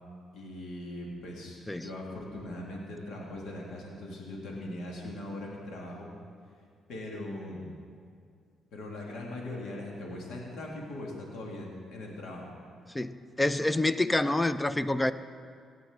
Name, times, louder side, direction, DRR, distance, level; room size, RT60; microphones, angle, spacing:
voice 1, 0.3-6.1 6.9-7.7 8.7-12.5, left 1 dB, 80° left, -2 dB, 1.9 m, -40 dB
voice 2, 12.9-15.1, left 2 dB, 10° left, 13 dB, 0.4 m, -27 dB
17.5 x 8.8 x 3.6 m, 2.2 s
cardioid pair, 90°, 0 cm